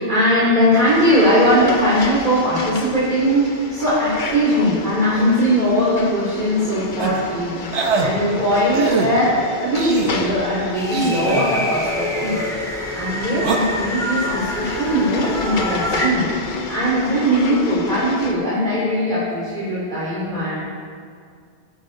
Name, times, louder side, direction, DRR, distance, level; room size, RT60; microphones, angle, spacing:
voice 1, 0.0-12.4 12.9-16.3 16.5-20.5, equal, 45° right, -9 dB, 2.8 m, -20 dB
sound 1, 0.8-18.3, left 3 dB, 50° left, 1.0 m, -30 dB
sound 2, 7.0-7.2 7.7-8.1 8.7-9.1 9.7-10.2 10.9-11.5 13.4-13.6, right 4 dB, 80° right, 1.3 m, -22 dB
sound 3, 10.7-16.1, equal, 5° left, 1.4 m, -27 dB
16.5 x 9.4 x 3.8 m, 2.2 s
omnidirectional pair, 1.1 m